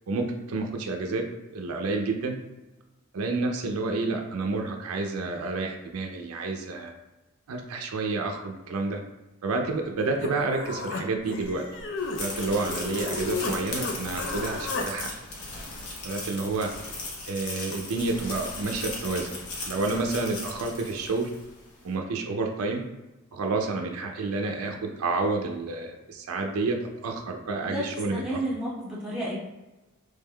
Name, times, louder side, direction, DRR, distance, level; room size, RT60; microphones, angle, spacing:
voice 1, 0.1-1.2 1.5-2.4 3.1-6.9 7.5-9.0 9.4-11.6 12.2-15.1 16.0-16.7 17.3-19.4 19.7-21.3 21.8-22.8 23.3-26.8 27.0-28.4, right 3 dB, 70° right, 3 dB, 0.4 m, -29 dB
Human voice, 10.2-13.6 13.8-14.9, left 3 dB, 60° left, 0.5 m, -33 dB
sound 1, 12.0-21.5, left 2 dB, 85° left, 0.8 m, -37 dB
voice 2, 28.1-29.4, right 1 dB, 5° right, -6 dB, 1.1 m, -31 dB
3.4 x 3.2 x 2.2 m, 1.1 s
head